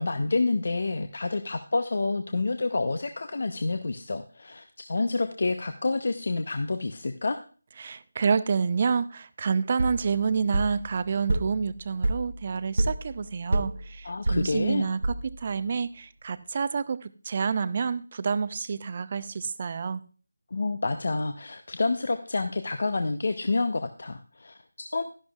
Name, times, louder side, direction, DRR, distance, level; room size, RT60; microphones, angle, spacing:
voice 1, 0.0-7.4 14.0-14.9 20.5-25.0, left 3 dB, 50° left, 8 dB, 0.7 m, -28 dB
voice 2, 7.8-20.0, right 5 dB, 35° right, 15 dB, 0.5 m, -28 dB
sound 1, 9.8-15.6, right 2 dB, 60° right, 0.8 m, -30 dB
12.5 x 11.0 x 2.4 m, 0.38 s
figure-of-eight pair, 160°, 0 cm